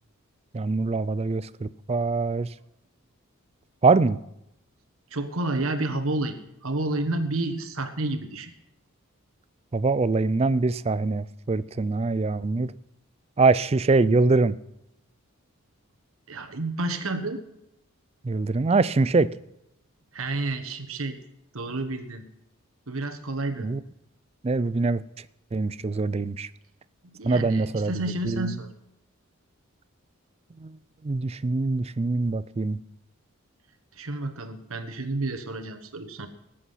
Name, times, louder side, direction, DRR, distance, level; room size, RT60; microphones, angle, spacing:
voice 1, 0.5-2.5 3.8-4.2 9.7-12.7 13.4-14.6 18.2-19.3 23.6-23.8 24.4-25.0 25.5-26.5 27.2-27.9 28.2-28.5 30.6-30.7 31.0-32.8, right 3 dB, 30° right, 16 dB, 0.4 m, -23 dB
voice 2, 5.1-8.5 16.3-17.4 20.1-21.2 21.5-22.3 22.9-23.7 27.0-28.7 33.9-36.3, right 2 dB, 75° right, 8 dB, 1.4 m, -30 dB
19.0 x 8.6 x 5.7 m, 0.83 s
head